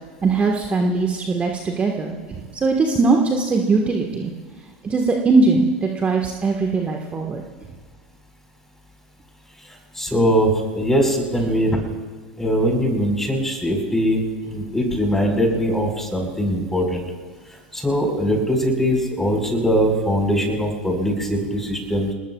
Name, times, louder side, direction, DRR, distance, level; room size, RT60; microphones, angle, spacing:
voice 1, 0.2-4.3 4.8-7.4, right 3 dB, 25° right, 2 dB, 1.6 m, -20 dB
voice 2, 9.6-11.8 12.4-17.0 17.5-22.1, equal, 5° left, 1 dB, 5.0 m, -21 dB
28.0 x 20.0 x 2.4 m, 1.5 s
figure-of-eight pair, 85°, 6 cm